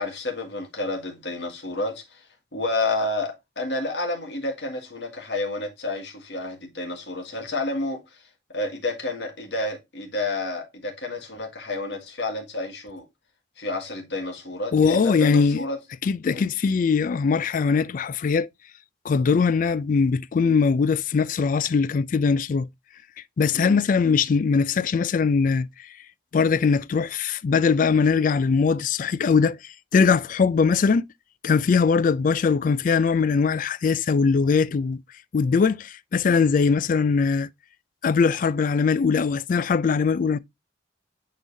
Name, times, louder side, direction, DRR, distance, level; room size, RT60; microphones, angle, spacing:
voice 1, 0.0-2.2 2.5-8.2 8.5-13.1 13.6-15.8 16.2-16.5 23.5-23.8, left 2 dB, 75° left, 1.8 m, -30 dB
voice 2, 14.7-15.6 16.0-18.5 19.0-22.7 23.4-25.9 26.3-29.6 29.9-31.1 31.4-35.0 35.3-37.5 38.0-40.4, left 5 dB, 50° left, 0.3 m, -21 dB
9.0 x 4.0 x 2.6 m
head